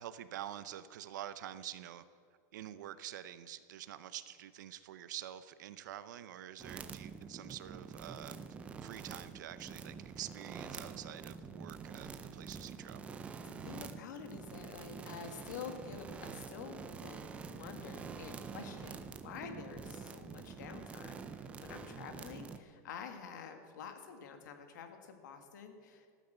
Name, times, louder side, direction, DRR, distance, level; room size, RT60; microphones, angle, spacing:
voice 1, 0.0-2.0 2.5-8.4 8.8-13.2, right 12 dB, 90° right, 13 dB, 0.7 m, -47 dB
sound 1, 6.6-22.6, right 5 dB, 15° right, 0.5 m, -47 dB
voice 2, 13.5-26.2, left 6 dB, 80° left, 6 dB, 1.8 m, -48 dB
14.5 x 9.3 x 8.0 m, 2.1 s
supercardioid pair, 170°, 10 cm